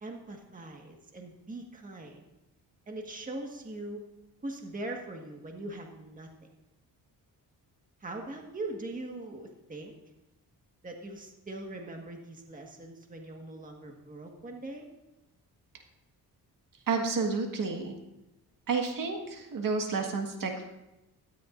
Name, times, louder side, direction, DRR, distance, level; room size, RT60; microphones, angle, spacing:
voice 1, 0.0-2.2 2.9-4.0 4.4-6.3 8.0-9.9 10.8-14.9, right 2 dB, 20° right, 2 dB, 1.6 m, -41 dB
voice 2, 16.9-18.0 18.7-20.7, right 4 dB, 60° right, 3 dB, 1.7 m, -30 dB
17.0 x 13.0 x 2.6 m, 0.96 s
cardioid pair, 140°, 38 cm